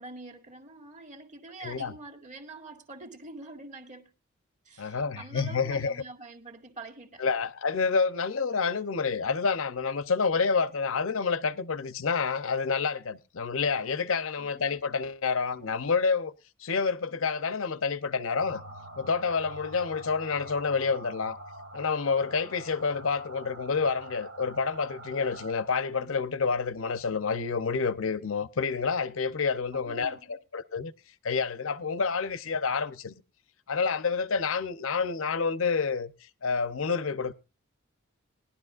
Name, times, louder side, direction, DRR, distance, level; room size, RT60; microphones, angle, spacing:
voice 1, 0.0-4.1 4.7-7.2 14.4-14.6 29.7-30.4, right 2 dB, 35° right, 1.8 m, -45 dB
voice 2, 1.6-1.9 4.8-6.0 7.2-16.3 16.6-18.6 19.0-21.4 21.7-30.9 31.2-33.1 33.7-37.3, left 5 dB, 70° left, 0.7 m, -28 dB
sound 1, 18.4-25.5, right 2 dB, 90° right, 1.3 m, -45 dB
20.0 x 11.5 x 2.5 m
head